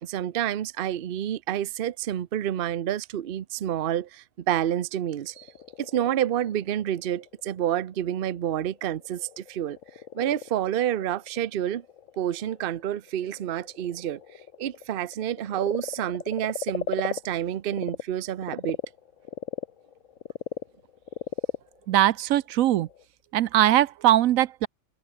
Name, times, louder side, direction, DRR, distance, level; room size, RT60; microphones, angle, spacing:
voice 1, 0.0-5.5 5.8-9.8 10.1-11.8 12.2-14.2 14.6-18.8, right 11 dB, 50° right, 0.8 m, -29 dB
Frog, 5.1-18.0 18.4-23.0, left 9 dB, 70° left, 1.3 m, -38 dB
voice 2, 21.9-22.9 23.3-24.7, right 13 dB, 80° right, 1.0 m, -21 dB
omnidirectional pair, 1.4 m